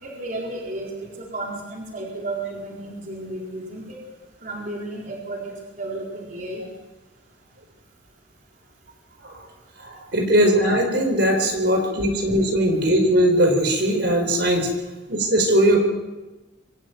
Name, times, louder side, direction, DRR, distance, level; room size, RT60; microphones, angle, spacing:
voice 1, 0.0-4.0 4.4-6.7, right 2 dB, 45° right, -2 dB, 4.1 m, -33 dB
voice 2, 9.8-14.7 15.1-15.8, right 1 dB, 65° right, 3 dB, 4.7 m, -20 dB
24.5 x 12.0 x 9.3 m, 1.1 s
head